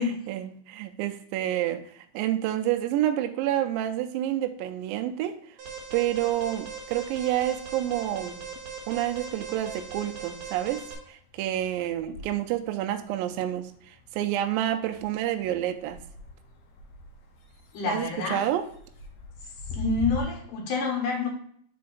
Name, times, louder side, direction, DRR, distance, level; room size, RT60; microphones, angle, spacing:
voice 1, 0.0-5.4 5.9-8.4 8.9-16.0 17.9-18.7, right 12 dB, 85° right, 2.0 m, -29 dB
Alarm, 5.6-10.9, right 5 dB, 65° right, 2.0 m, -40 dB
sound 1, 7.0-8.2 8.5-20.2, left 2 dB, 80° left, 1.5 m, -44 dB
voice 2, 17.7-18.4 19.7-21.3, left 4 dB, 60° left, 2.7 m, -28 dB
5.5 x 4.3 x 3.9 m
omnidirectional pair, 4.6 m